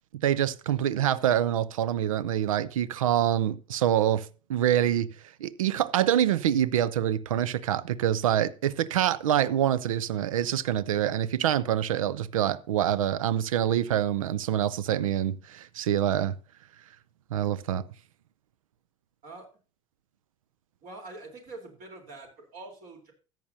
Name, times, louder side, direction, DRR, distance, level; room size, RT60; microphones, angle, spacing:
voice 1, 0.2-5.1 5.4-16.4 17.3-17.9, right 11 dB, 85° right, 0.5 m, -26 dB
voice 2, 20.8-23.1, right 2 dB, 55° right, 3.7 m, -45 dB
14.0 x 9.0 x 2.7 m
hypercardioid pair, 65°, 17 cm